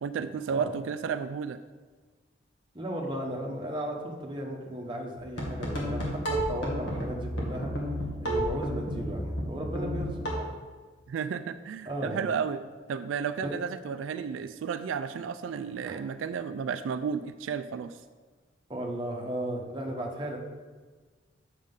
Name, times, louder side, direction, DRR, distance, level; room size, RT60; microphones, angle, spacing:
voice 1, 0.0-1.6 11.1-12.6 12.9-18.0, right 6 dB, 85° right, 11 dB, 0.3 m, -32 dB
voice 2, 2.7-7.7 8.2-10.5 11.8-12.2 13.4-13.6 15.9-16.1 18.7-20.4, right 1 dB, 25° right, 0 dB, 1.0 m, -35 dB
sound 1, 5.2-10.3, equal, 70° left, 1.7 m, -31 dB
7.4 x 6.5 x 3.7 m, 1.4 s
head